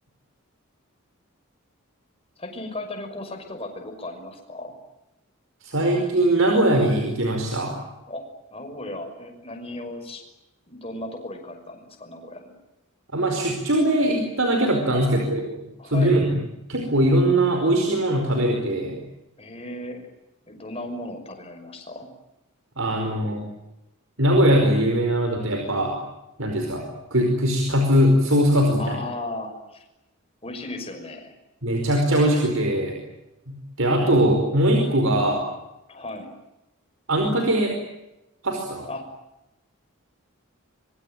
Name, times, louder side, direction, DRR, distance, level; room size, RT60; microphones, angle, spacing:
voice 1, 2.4-4.7 8.1-8.2 8.5-10.2 10.7-12.6 14.9-15.3 15.8-16.2 19.4-20.1 20.5-22.1 28.7-29.9 30.4-31.3 35.9-36.3 38.9-39.0, left 2 dB, 30° left, 4 dB, 5.9 m, -36 dB
voice 2, 5.6-7.8 13.1-15.4 15.8-16.2 16.7-19.0 22.8-23.4 24.2-26.0 26.4-29.0 31.6-33.0 33.5-35.4 37.1-37.7 38.4-38.9, right 1 dB, 70° right, 3 dB, 5.0 m, -21 dB
26.0 x 23.5 x 9.2 m, 0.95 s
head